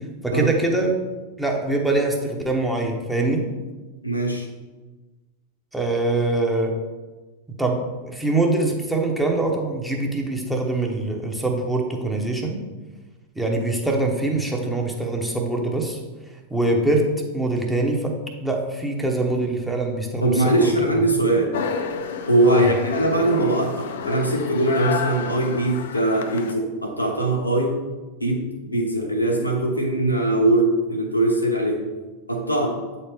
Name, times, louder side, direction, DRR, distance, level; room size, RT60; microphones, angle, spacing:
voice 1, 0.2-1.0 1.4-3.5 5.7-6.8 7.6-12.6 13.4-16.0 16.5-17.1 17.3-18.1 18.4-20.7 22.4-22.7, right 2 dB, 5° right, 0 dB, 1.0 m, -23 dB
voice 2, 4.0-4.5 20.2-21.5 22.3-27.8 28.2-31.8 32.3-32.8, right 2 dB, 90° left, 0 dB, 1.1 m, -21 dB
sound 1, 21.5-26.5, left 6 dB, 60° left, 0.5 m, -29 dB
8.0 x 4.3 x 3.4 m, 1.2 s
figure-of-eight pair, 90°, 0 cm